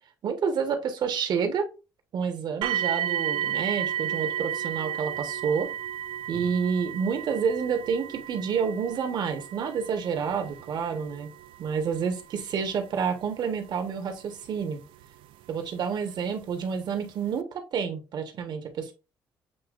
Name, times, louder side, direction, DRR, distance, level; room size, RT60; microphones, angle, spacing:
voice 1, 0.2-1.7 2.1-5.7 6.3-11.3 11.6-14.8 15.5-18.9, right 6 dB, 60° right, 5 dB, 1.1 m, -29 dB
sound 1, 2.6-15.5 16.3-16.4 17.0-17.1, right 10 dB, 85° right, 0.3 m, -34 dB
7.7 x 2.7 x 2.5 m, 0.30 s
cardioid pair, 105°, 8 cm